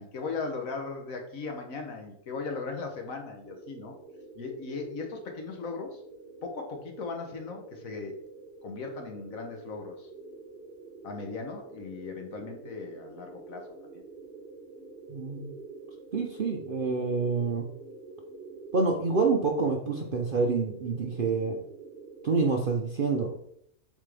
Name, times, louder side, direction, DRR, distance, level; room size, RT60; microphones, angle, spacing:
voice 1, 0.0-4.0 4.4-6.0 6.4-8.1 8.6-10.1 11.0-14.0, left 4 dB, 60° left, 3 dB, 1.3 m, -38 dB
sound 1, 3.4-22.4, right 3 dB, 35° right, 1.8 m, -47 dB
voice 2, 15.1-15.5 16.1-17.6 18.7-21.6 22.2-23.3, right 4 dB, 55° right, 1 dB, 0.6 m, -27 dB
7.4 x 4.2 x 3.4 m, 0.70 s
omnidirectional pair, 1.7 m